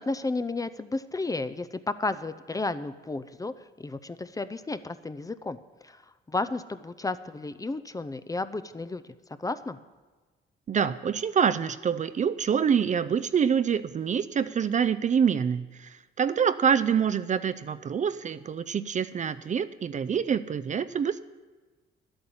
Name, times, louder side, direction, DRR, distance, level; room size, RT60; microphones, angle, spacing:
voice 1, 0.0-3.5 3.8-5.6 5.8-6.0 6.3-9.0 9.4-9.8, left 3 dB, 15° left, 13 dB, 0.5 m, -32 dB
voice 2, 10.7-15.9 16.2-21.2, right 7 dB, 40° right, 13 dB, 0.4 m, -26 dB
11.5 x 8.8 x 7.0 m, 1.3 s
cardioid pair, 90°, 20 cm